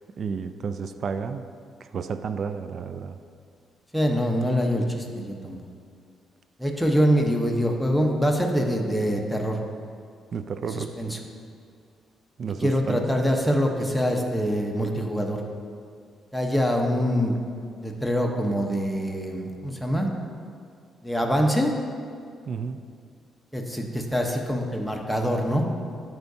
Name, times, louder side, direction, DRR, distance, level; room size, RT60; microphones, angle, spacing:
voice 1, 0.2-1.5 1.9-3.2 10.3-10.9 12.4-13.0 22.5-22.8, right 6 dB, 55° right, 10 dB, 0.3 m, -31 dB
voice 2, 3.9-5.6 6.6-9.6 10.7-11.2 12.6-15.4 16.3-17.4 17.8-20.1 21.0-21.7 23.5-25.6, equal, ahead, 1 dB, 0.9 m, -24 dB
12.0 x 4.6 x 2.7 m, 2.3 s
cardioid pair, 90°, 0 cm